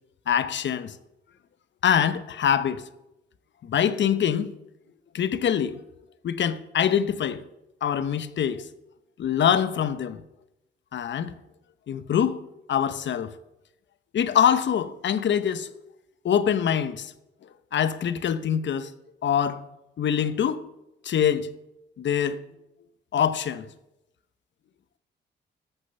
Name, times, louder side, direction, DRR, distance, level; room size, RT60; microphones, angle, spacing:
voice 1, 0.3-1.0 1.8-2.8 3.6-4.6 5.1-5.8 6.2-7.4 7.8-8.7 9.2-10.2 10.9-11.4 11.9-12.4 12.7-13.3 14.1-15.7 16.2-17.1 17.7-18.9 19.2-19.6 20.0-20.6 21.0-21.5 22.0-22.4 23.1-23.6, left 8 dB, 65° left, 0.9 m, -24 dB
13.0 x 6.5 x 6.9 m
supercardioid pair, 60°, 20 cm